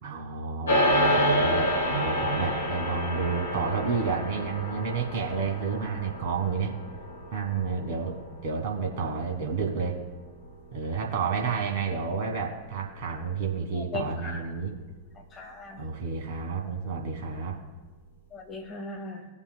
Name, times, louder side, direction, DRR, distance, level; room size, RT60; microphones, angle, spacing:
voice 1, 0.0-6.7 7.3-8.2 8.4-10.0 10.7-14.7 15.8-17.6, right 5 dB, 50° right, 2 dB, 2.2 m, -30 dB
sound 1, 0.7-10.2, equal, 70° left, 2.3 m, -29 dB
voice 2, 13.7-14.4 15.3-15.8 18.3-19.3, left 3 dB, 25° left, 1 dB, 2.0 m, -38 dB
20.5 x 7.0 x 2.3 m, 1.2 s
figure-of-eight pair, 90°, 0 cm